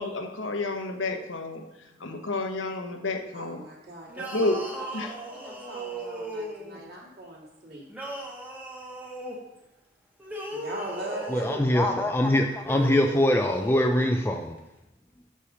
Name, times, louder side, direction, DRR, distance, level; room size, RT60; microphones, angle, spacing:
voice 1, 0.0-1.6 2.0-3.6 4.3-4.6 4.9-5.1, left 2 dB, 80° left, 4 dB, 1.0 m, -30 dB
voice 2, 3.3-7.8 10.5-11.9, right 1 dB, 50° right, -4 dB, 2.5 m, -41 dB
sound 1, 4.1-6.8 7.9-9.4 10.2-11.7 12.6-14.1, right 1 dB, 10° right, 1.1 m, -37 dB
voice 3, 11.3-14.5, left 1 dB, 10° left, 4 dB, 0.3 m, -23 dB
6.4 x 5.7 x 6.3 m, 0.93 s
head